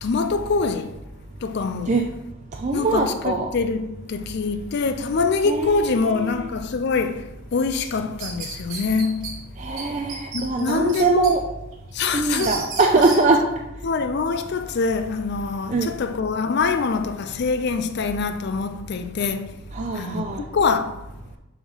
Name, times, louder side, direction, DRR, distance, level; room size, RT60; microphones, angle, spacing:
voice 1, 0.0-0.9 1.4-1.9 2.7-9.3 10.3-11.3 11.9-12.6 13.8-19.6 19.9-21.0, left 4 dB, 50° left, 0.4 m, -24 dB
voice 2, 2.5-3.5 5.5-6.4 9.6-11.4 12.1-13.4 15.7-15.9 19.7-20.5, right 3 dB, 35° right, 0.4 m, -22 dB
sound 1, 7.8-9.3 9.8-9.9 10.1-11.3 11.7-13.2, right 5 dB, 85° right, 2.1 m, -33 dB
7.1 x 3.1 x 5.5 m
head